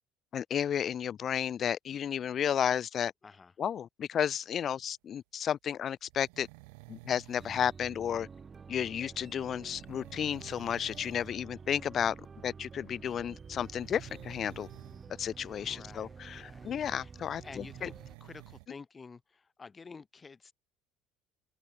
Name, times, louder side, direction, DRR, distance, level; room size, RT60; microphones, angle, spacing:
voice 1, 0.3-3.1 3.6-6.5 6.9-8.3 8.7-12.2 12.4-14.7 15.2-17.9, left 9 dB, 45° left, 0.4 m, -32 dB
voice 2, 3.2-3.5 15.6-17.1 17.4-17.9 18.2-20.5, left 4 dB, 25° left, 1.3 m, -50 dB
sound 1, 6.1-7.7 9.6-11.4 11.7-12.0 13.4-15.1 17.2-18.7, right 34 dB, 85° right, 0.4 m, -53 dB
sound 2, 7.4-18.2, right 5 dB, 30° right, 1.0 m, -49 dB
open air
supercardioid pair, 90°, 0 cm